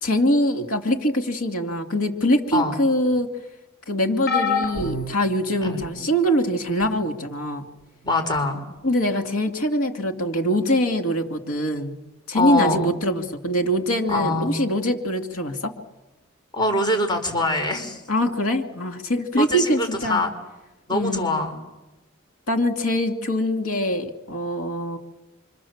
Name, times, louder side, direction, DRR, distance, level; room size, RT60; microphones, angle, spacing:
voice 1, 0.0-3.3 3.9-7.7 8.8-12.0 12.3-15.7 18.1-20.2 20.9-21.3 22.5-25.0, equal, 80° left, 6 dB, 2.7 m, -23 dB
sound 1, 4.3-6.1 6.8-7.1 8.4-8.5, left 4 dB, 50° left, 4.7 m, -28 dB
voice 2, 8.0-8.6 12.3-12.9 14.1-14.5 16.5-18.0 19.3-20.3 20.9-21.6, left 2 dB, 20° left, 4 dB, 4.5 m, -23 dB
27.0 x 25.5 x 7.4 m, 1.0 s
head